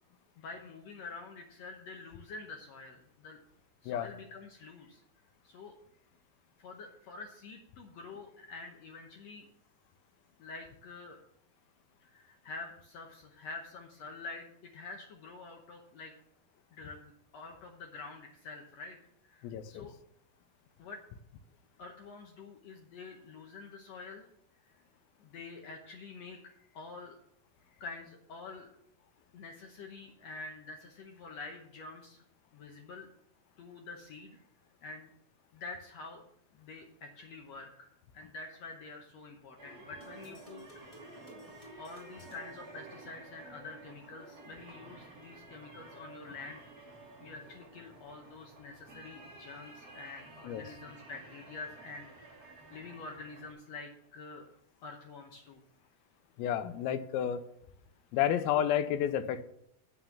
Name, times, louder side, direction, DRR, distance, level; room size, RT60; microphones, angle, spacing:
voice 1, 0.4-3.4 3.8-5.0 5.4-5.7 6.6-9.5 10.4-11.2 12.0-16.1 16.7-19.0 19.2-19.9 20.8-21.0 21.8-24.3 25.2-27.2 27.7-28.7 29.3-32.2 32.5-33.1 33.6-34.4 34.8-35.1 35.5-36.2 36.5-40.6 41.8-46.7 47.2-54.5 54.8-55.6, left 3 dB, 70° left, 2 dB, 1.6 m, -47 dB
voice 2, 19.4-19.9 50.4-50.6 56.4-57.4 58.1-59.4, left 10 dB, 85° left, 11 dB, 2.5 m, -31 dB
sound 1, 39.6-53.5, right 2 dB, 30° right, 2.2 m, -52 dB
sound 2, 40.0-43.5, equal, 15° left, 1.5 m, -55 dB
9.2 x 6.4 x 7.2 m, 0.72 s
omnidirectional pair, 4.2 m